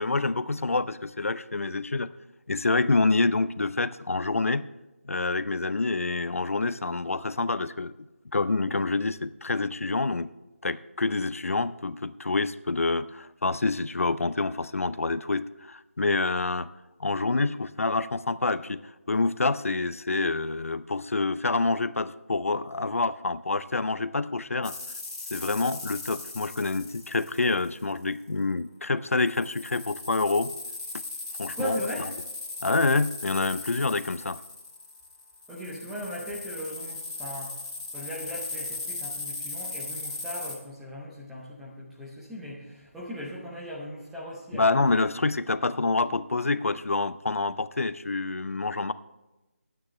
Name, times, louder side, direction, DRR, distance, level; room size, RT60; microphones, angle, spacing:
voice 1, 0.0-2.1 2.5-4.7 5.0-7.9 8.3-10.3 10.6-16.7 17.0-24.7 25.3-30.5 31.4-31.8 32.6-34.4 44.5-48.9, left 3 dB, 75° left, 15 dB, 0.6 m, -27 dB
sound 1, 24.6-28.0 29.1-40.5, left 3 dB, 30° left, 2.3 m, -38 dB
voice 2, 31.5-32.1 35.5-37.6 37.9-44.7, equal, ahead, -6 dB, 0.6 m, -38 dB
20.0 x 9.1 x 3.2 m, 1.0 s
figure-of-eight pair, 175°, 8 cm